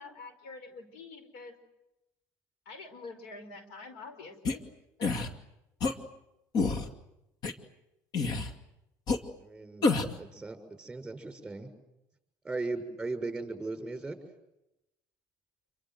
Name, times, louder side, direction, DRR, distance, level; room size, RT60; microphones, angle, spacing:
voice 1, 0.0-1.5 2.6-4.6 5.0-5.1, left 3 dB, 85° left, 10 dB, 5.1 m, -46 dB
sound 1, 4.5-4.6 5.0-5.3 5.8-5.9 6.5-6.9 7.4-7.5 8.1-8.5 9.1-9.2 9.8-10.2, left 3 dB, 55° left, 2.5 m, -28 dB
voice 2, 9.4-9.9 10.2-11.7 12.4-14.2, right 3 dB, 10° right, 6 dB, 6.5 m, -37 dB
28.5 x 24.0 x 7.9 m, 0.89 s
cardioid pair, 110°, 8 cm